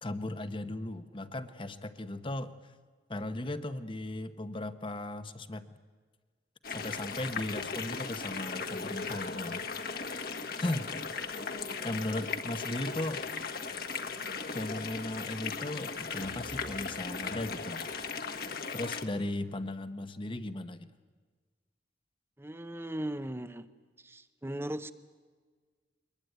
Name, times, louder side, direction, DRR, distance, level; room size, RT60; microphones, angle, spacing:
voice 1, 0.0-2.5 3.1-5.7 6.7-9.7 10.6-10.9 11.8-13.2 14.5-17.9 18.7-20.9, left 1 dB, 30° left, 11 dB, 1.0 m, -37 dB
sound 1, 6.6-19.0, left 5 dB, 55° left, 1.5 m, -37 dB
voice 2, 22.4-23.7 24.0-24.9, right 1 dB, 15° right, 12 dB, 0.8 m, -38 dB
22.5 x 21.0 x 9.4 m, 1.5 s
head